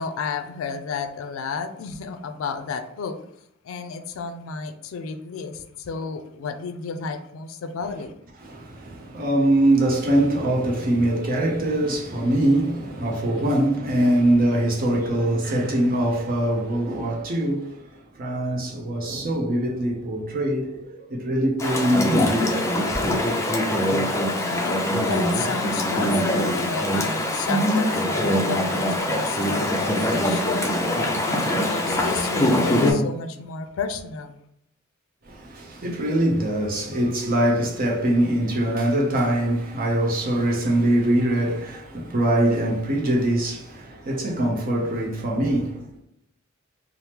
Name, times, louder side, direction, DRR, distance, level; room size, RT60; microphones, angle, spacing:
voice 1, 0.0-3.2 3.6-8.1 13.4-13.6 24.2-30.8 31.2-34.4, left 5 dB, 80° left, 0.4 m, -32 dB
voice 2, 8.4-17.9 18.1-22.4 22.9-23.2 35.2-46.0, right 1 dB, 45° right, 0.6 m, -23 dB
Chatter / Stream, 21.6-32.9, left 1 dB, 15° left, 0.4 m, -23 dB
2.8 x 2.0 x 3.3 m
head